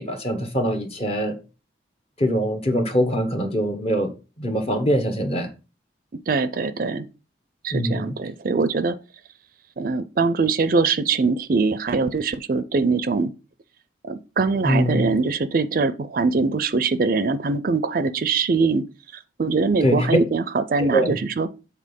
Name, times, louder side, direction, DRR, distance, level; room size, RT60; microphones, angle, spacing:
voice 1, 0.0-1.4 2.2-4.1 4.4-5.5 7.7-8.2 14.6-15.1 19.8-20.1 20.8-21.1, equal, 35° left, 1.1 m, -23 dB
voice 2, 6.3-7.1 7.6-9.0 9.8-13.3 14.0-18.8 19.4-21.5, right 4 dB, 50° right, 0.4 m, -22 dB
7.5 x 4.1 x 5.2 m
head